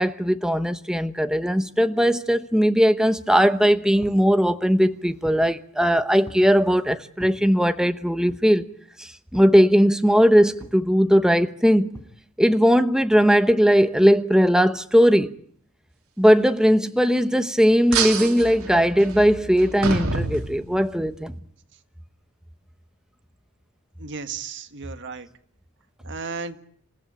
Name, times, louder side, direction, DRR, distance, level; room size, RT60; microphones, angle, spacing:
voice 1, 0.0-8.7 9.0-11.9 12.4-15.3 16.2-21.3, equal, 5° right, 1.0 m, -19 dB
sound 1, 4.0-4.3 4.8-5.5 6.2-6.5 7.2-7.4 8.3-8.6 9.3-9.6 10.6-10.9 11.9-12.2, equal, 15° left, 4.0 m, -43 dB
sound 2, 17.9-21.1, right 4 dB, 75° right, 3.2 m, -28 dB
voice 2, 24.0-25.3 26.0-26.6, right 5 dB, 55° right, 1.7 m, -34 dB
28.0 x 15.5 x 8.8 m
head